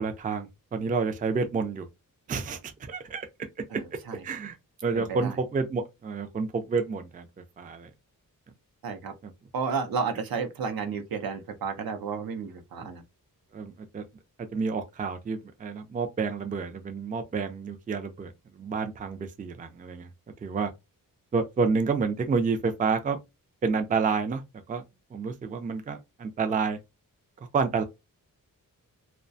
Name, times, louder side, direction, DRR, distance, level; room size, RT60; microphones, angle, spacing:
voice 1, 0.0-1.9 2.3-3.3 4.2-4.6 4.8-7.3 7.6-7.9 9.2-9.3 13.5-14.0 14.4-20.1 20.4-20.7 21.3-23.2 23.6-24.4 24.7-24.8 25.1-26.8 27.5-27.8, right 5 dB, 25° right, 0.3 m, -29 dB
voice 2, 3.7-4.2 4.9-5.4 8.8-9.1 9.5-13.0, right 5 dB, 85° right, 0.6 m, -32 dB
2.3 x 2.2 x 2.5 m
wide cardioid pair, 130°, 35 cm